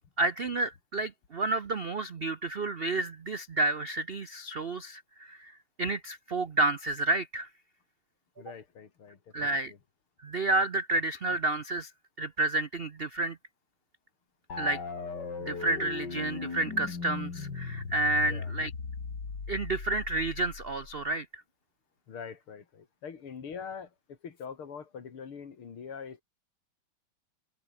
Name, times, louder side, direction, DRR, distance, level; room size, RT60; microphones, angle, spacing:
voice 1, 0.2-5.5 5.8-7.5 9.3-9.7 10.2-11.9 12.2-13.4 14.6-14.8 15.4-18.7 19.5-21.4, right 2 dB, 70° right, 0.5 m, -30 dB
voice 2, 8.4-9.8 18.2-18.5 22.1-26.2, left 6 dB, 90° left, 3.4 m, -44 dB
sound 1, 14.5-21.1, left 5 dB, 55° left, 3.5 m, -38 dB
omnidirectional pair, 2.3 m